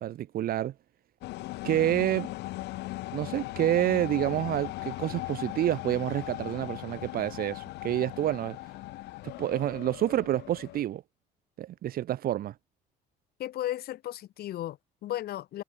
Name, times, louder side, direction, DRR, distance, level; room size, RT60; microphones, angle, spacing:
voice 1, 0.0-0.7 1.6-2.3 3.1-8.6 9.2-11.0 11.6-12.5, right 12 dB, 60° right, 1.4 m, -28 dB
sound 1, 1.2-10.8, left 18 dB, 85° left, 2.5 m, -38 dB
voice 2, 13.4-15.6, left 13 dB, 65° left, 1.9 m, -35 dB
cardioid pair, 110°, 17 cm